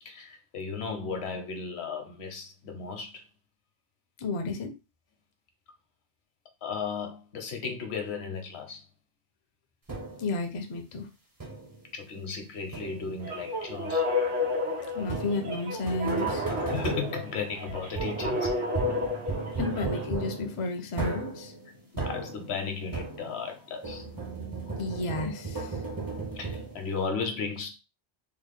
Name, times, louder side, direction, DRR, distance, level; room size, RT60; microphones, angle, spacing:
voice 1, 0.0-3.2 6.6-8.8 11.9-14.0 16.5-18.5 21.9-24.1 26.4-27.7, left 5 dB, 70° left, 1.0 m, -35 dB
voice 2, 4.2-4.7 10.2-11.1 14.9-16.4 19.6-21.5 24.8-25.7, left 3 dB, 40° left, 0.5 m, -32 dB
sound 1, 9.9-10.4 11.4-11.9 12.7-13.3 15.0-23.5 23.8-27.0, right 3 dB, 25° right, 0.6 m, -36 dB
sound 2, 13.2-20.1, left 2 dB, 90° right, 1.6 m, -31 dB
3.7 x 2.1 x 3.5 m
omnidirectional pair, 1.2 m